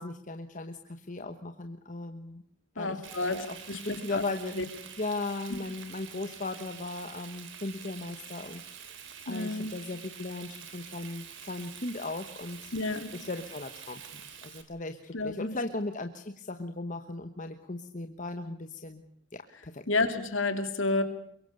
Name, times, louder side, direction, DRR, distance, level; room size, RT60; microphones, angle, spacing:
voice 1, 0.0-2.4 2.7-3.5 3.8-4.5 5.0-8.6 9.2-12.7 13.3-19.0 19.3-19.8, left 2 dB, 40° left, 7 dB, 1.2 m, -37 dB
voice 2, 2.8-4.2 4.5-4.6 5.5-5.6 9.3-9.7 12.7-13.1 15.1-15.6 19.9-21.0, left 2 dB, 65° left, 8 dB, 3.0 m, -30 dB
Frying (food), 3.0-14.6, right 8 dB, 60° right, 3.0 m, -47 dB
23.0 x 23.0 x 6.8 m, 0.72 s
head